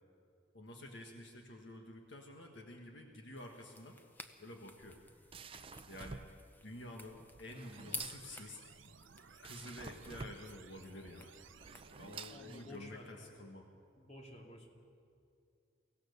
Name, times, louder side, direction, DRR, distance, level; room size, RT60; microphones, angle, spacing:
voice 1, 0.5-4.0 4.4-5.0 5.9-6.2 6.6-8.6 9.4-11.3 12.0-13.7, left 1 dB, 65° left, 2 dB, 1.6 m, -50 dB
sound 1, 3.4-12.4, left 2 dB, 10° left, 0.8 m, -53 dB
sound 2, 4.7-13.1, right 4 dB, 30° right, 0.5 m, -51 dB
sound 3, 7.7-12.7, right 6 dB, 80° right, 0.7 m, -60 dB
voice 2, 12.3-13.3 14.0-14.7, left 1 dB, 35° left, 1 dB, 2.6 m, -52 dB
24.0 x 17.0 x 6.8 m, 2.4 s
head